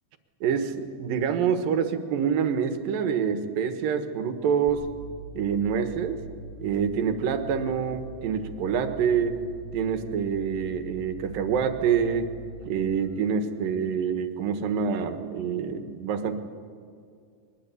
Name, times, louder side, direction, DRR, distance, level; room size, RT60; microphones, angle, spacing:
voice 1, 0.4-4.9 5.4-6.2 6.6-9.4 9.7-12.3 12.7-16.3, right 7 dB, 85° right, 8 dB, 3.1 m, -26 dB
sound 1, 4.7-13.7, right 1 dB, 30° right, 4.2 m, -43 dB
22.5 x 21.5 x 8.5 m, 2.3 s
omnidirectional pair, 3.9 m